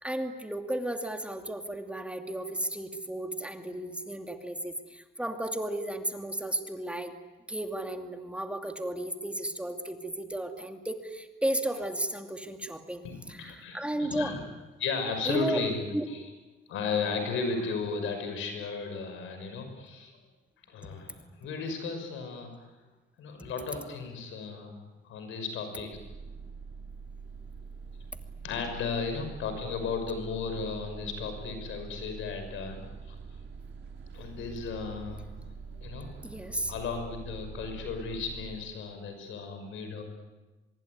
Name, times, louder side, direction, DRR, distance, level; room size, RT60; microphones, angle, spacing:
voice 1, 0.0-7.1 7.5-13.0 13.3-14.3 15.3-15.6 15.9-16.1 36.2-36.7, right 1 dB, 5° right, 5 dB, 2.6 m, -34 dB
voice 2, 13.0-14.4 14.8-15.8 16.1-16.3 16.7-20.1 20.7-22.5 23.2-24.8 25.0-26.0 28.4-33.2 34.1-35.5 35.8-36.2 36.7-40.0, left 4 dB, 85° left, 6 dB, 6.0 m, -35 dB
sound 1, 25.9-38.6, right 5 dB, 75° right, 4.6 m, -44 dB
25.0 x 22.5 x 9.7 m, 1.2 s
cardioid pair, 90°, 20 cm